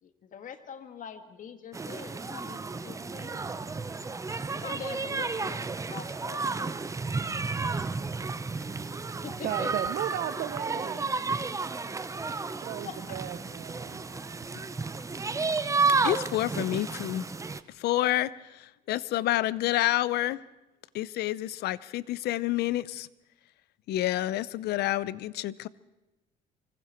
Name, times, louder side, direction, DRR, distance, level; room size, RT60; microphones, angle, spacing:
voice 1, 0.0-3.7 4.5-5.6 5.9-6.8 8.6-9.9 12.8-13.2, left 7 dB, 50° left, 2.0 m, -44 dB
sound 1, 1.7-17.6, right 4 dB, 20° right, 0.8 m, -32 dB
voice 2, 9.4-11.1 12.6-14.0, right 12 dB, 65° right, 1.0 m, -35 dB
voice 3, 16.0-17.3 17.8-20.4 20.9-23.1 23.9-25.7, left 15 dB, 75° left, 0.7 m, -29 dB
25.0 x 24.5 x 4.5 m
cardioid pair, 110°, 17 cm